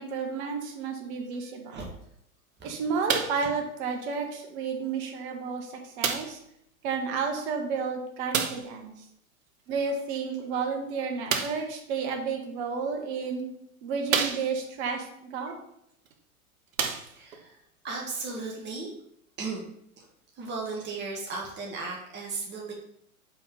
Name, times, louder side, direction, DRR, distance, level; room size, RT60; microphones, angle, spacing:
voice 1, 0.0-1.9 2.6-6.4 6.8-8.9 9.7-13.4 13.8-15.5, right 5 dB, 50° right, 3 dB, 1.8 m, -31 dB
sound 1, 3.1-3.5 4.4-4.5 6.0-6.4 8.3-8.7 11.3-11.7 12.7-12.8 13.4-13.5 14.1-14.8 16.1-16.2 16.7-17.4 18.2-18.3, right 6 dB, 70° right, 1.1 m, -29 dB
voice 2, 17.1-17.5 17.8-18.9 19.4-19.6 20.0-20.1 20.4-22.7, right 4 dB, 25° right, -2 dB, 1.8 m, -35 dB
5.5 x 5.1 x 5.7 m, 0.73 s
figure-of-eight pair, 95°, 43 cm